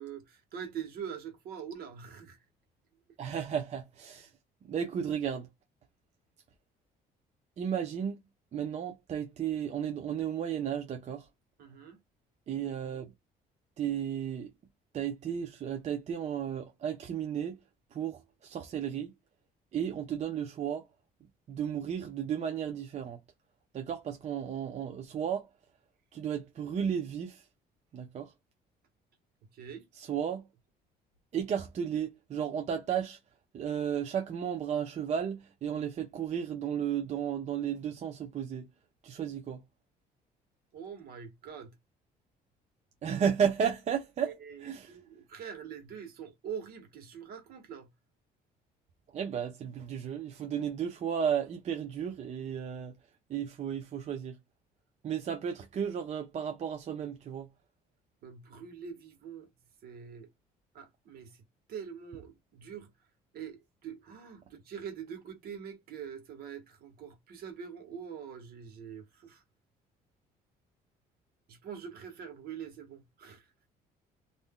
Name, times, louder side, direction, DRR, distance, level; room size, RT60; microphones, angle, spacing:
voice 1, 0.0-2.4 11.6-12.0 29.5-29.9 40.7-41.7 44.2-47.9 58.2-59.5 59.8-60.3 60.7-61.4 61.7-62.9 63.3-69.4 71.5-73.5, right 7 dB, 65° right, 1.2 m, -44 dB
voice 2, 3.2-4.3 4.6-5.5 7.6-8.2 8.5-11.3 12.5-13.1 13.8-14.5 14.9-17.6 17.9-19.1 19.7-20.9 21.5-23.2 23.7-25.5 26.1-27.5 27.9-28.3 29.9-30.5 31.3-33.2 33.5-38.7 39.0-39.6 43.0-45.0 49.1-52.9 53.3-54.4 55.0-57.5, right 8 dB, 40° right, 0.5 m, -33 dB
2.6 x 2.2 x 3.5 m
cardioid pair, 110°, 17 cm